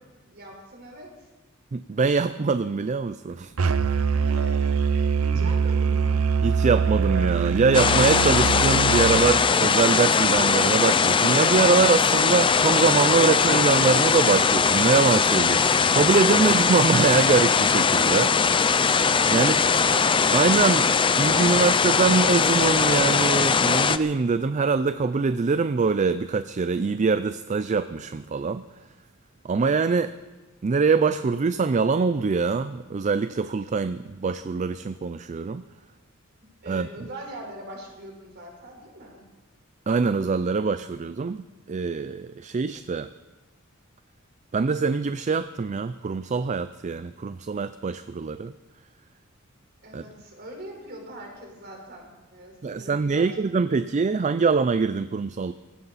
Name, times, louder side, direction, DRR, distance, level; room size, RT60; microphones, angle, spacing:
voice 1, 0.1-1.3 3.5-6.2 19.3-21.7 36.6-39.2 49.8-53.4, right 1 dB, 55° right, 0 dB, 4.4 m, -42 dB
voice 2, 1.7-3.7 5.4-5.5 6.4-15.7 15.9-18.8 19.3-19.6 20.3-20.8 21.2-28.6 29.4-30.1 30.6-35.6 36.7-36.9 39.9-43.1 44.5-48.5 49.9-50.0 52.6-55.5, right 4 dB, 35° right, 12 dB, 0.4 m, -23 dB
Musical instrument, 3.6-9.2, right 5 dB, 90° right, 0.6 m, -23 dB
sound 1, 7.7-24.0, left 5 dB, 25° left, 0.5 m, -20 dB
18.5 x 16.0 x 4.1 m, 1.2 s
head